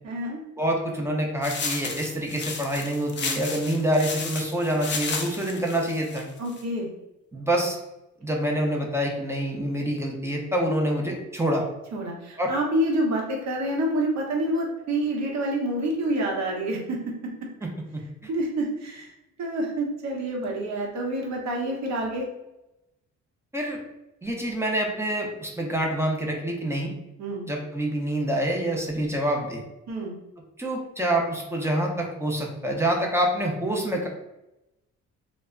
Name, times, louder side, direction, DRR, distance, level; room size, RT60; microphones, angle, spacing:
voice 1, 0.0-0.4 6.4-6.9 11.9-17.3 18.3-19.1 19.4-22.2 27.2-27.5 29.9-30.1, right 1 dB, 65° right, 0 dB, 0.9 m, -27 dB
voice 2, 0.6-6.3 7.3-7.8 8.2-11.7 12.4-12.5 17.6-18.0 23.5-23.8 24.2-26.9 27.4-29.6 30.6-34.1, right 1 dB, 10° right, -1 dB, 0.6 m, -26 dB
sound 1, 1.4-6.6, left 4 dB, 40° left, 0.5 m, -33 dB
2.2 x 2.1 x 3.6 m, 0.92 s
cardioid pair, 90°, 30 cm